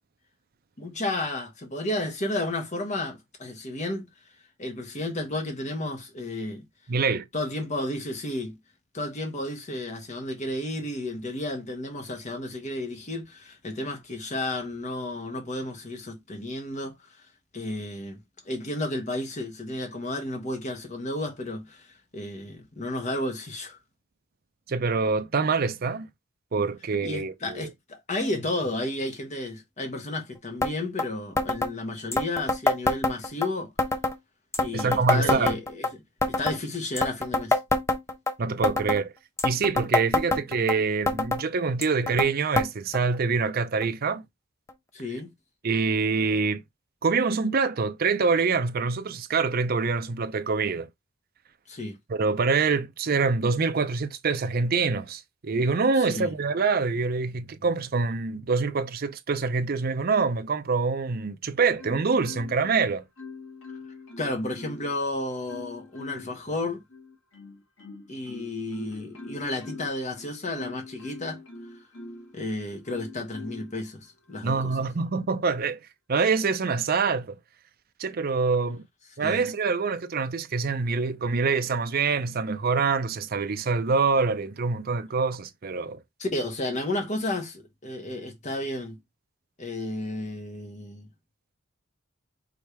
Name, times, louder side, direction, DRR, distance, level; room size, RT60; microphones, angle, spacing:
voice 1, 0.8-4.1 4.6-6.6 7.3-8.6 8.9-16.9 17.5-21.9 22.1-23.8 27.0-33.7 34.6-36.0 36.3-37.6 44.9-45.3 51.7-52.0 56.0-56.3 64.2-66.8 68.1-71.4 72.3-74.8 79.2-79.4 86.2-89.0 89.6-91.1, left 2 dB, 35° left, 1.2 m, -32 dB
voice 2, 6.9-7.2 24.7-26.1 26.5-27.7 34.7-35.6 38.4-39.1 39.4-44.2 45.6-46.6 47.0-50.9 52.1-63.0 74.4-75.8 76.1-77.4 78.0-78.8 79.2-86.0, right 4 dB, 50° right, 0.5 m, -25 dB
sound 1, 30.6-30.7 31.0-31.1 31.4-31.7 32.1-33.5 33.8-34.2 34.5-35.9 36.2-36.6 37.0-38.3 38.6-39.0 39.4-40.7 41.1-41.4 41.8-42.3 42.6-42.7 42.9-43.0 43.8-43.9 44.7-44.8, left 2 dB, 15° left, 0.6 m, -25 dB
Marimba xylophone, 61.8-62.8 63.2-65.0 65.5-66.4 66.9-72.3 72.9-73.7 74.3-74.5, left 3 dB, 85° left, 2.6 m, -43 dB
5.0 x 3.2 x 3.1 m
head